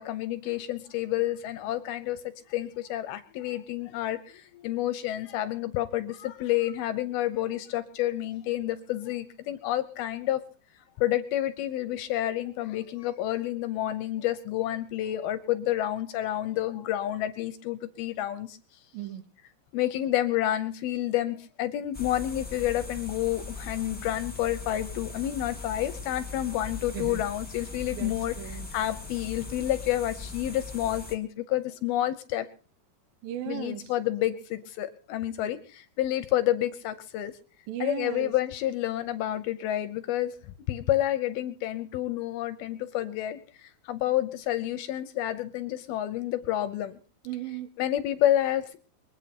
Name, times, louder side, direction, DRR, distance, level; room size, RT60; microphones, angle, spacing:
voice 1, 0.0-2.2 2.5-10.5 11.0-18.6 19.7-28.3 28.7-32.5 33.5-37.3 37.8-40.4 40.7-43.4 43.9-46.9 47.8-48.8, left 13 dB, 75° left, 11 dB, 2.4 m, -29 dB
voice 2, 18.9-19.2 26.9-27.2 27.9-28.7 33.2-33.9 37.7-38.3 47.3-47.7, right 12 dB, 70° right, 13 dB, 2.3 m, -36 dB
sound 1, 21.9-31.2, left 4 dB, 5° left, 1.6 m, -40 dB
23.0 x 8.9 x 5.9 m, 0.40 s
omnidirectional pair, 5.1 m